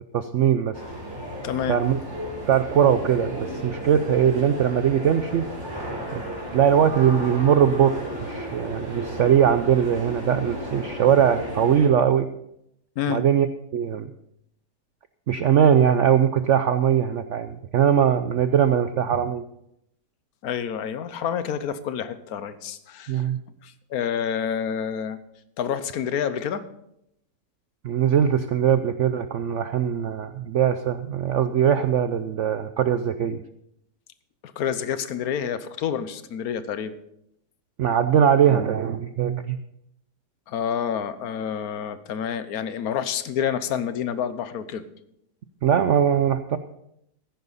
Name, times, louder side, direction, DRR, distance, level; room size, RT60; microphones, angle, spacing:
voice 1, 0.1-0.7 1.7-2.0 2.5-5.5 6.1-6.2 6.5-12.3 13.1-13.5 13.7-14.1 15.3-19.4 23.1-23.4 27.8-33.4 37.8-39.6 45.6-46.6, right 9 dB, 70° right, 10 dB, 0.7 m, -21 dB
sound 1, 0.7-11.9, right 1 dB, 15° right, 3.6 m, -34 dB
voice 2, 1.4-1.8 13.0-13.2 20.4-23.2 23.6-25.2 25.6-26.6 34.6-37.0 40.5-44.8, left 8 dB, 65° left, 13 dB, 1.3 m, -28 dB
14.5 x 11.0 x 4.1 m, 0.77 s
omnidirectional pair, 1.8 m